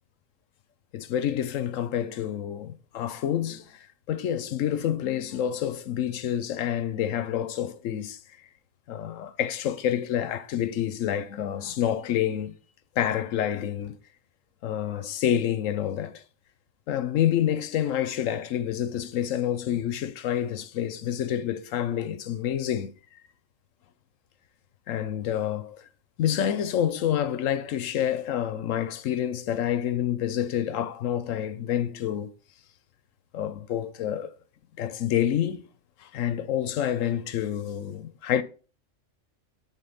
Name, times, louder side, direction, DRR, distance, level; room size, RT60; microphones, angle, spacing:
voice 1, 0.9-8.2 8.9-12.5 13.0-13.9 14.6-16.2 16.9-22.9 24.9-25.8 26.2-32.3 33.3-34.3 34.8-35.7 36.0-38.4, left 10 dB, 80° left, 1.1 m, -28 dB
8.3 x 4.0 x 5.5 m
omnidirectional pair, 1.3 m